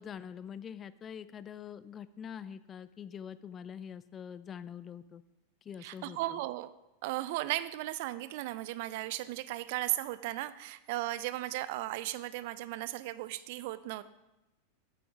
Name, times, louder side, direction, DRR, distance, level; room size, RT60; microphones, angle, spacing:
voice 1, 0.0-5.2 5.6-6.4, left 8 dB, 25° left, 16 dB, 0.4 m, -45 dB
voice 2, 5.8-6.7 7.0-14.0, right 16 dB, 50° right, 16 dB, 0.4 m, -36 dB
8.7 x 7.7 x 4.8 m, 0.98 s
figure-of-eight pair, 90°, 0 cm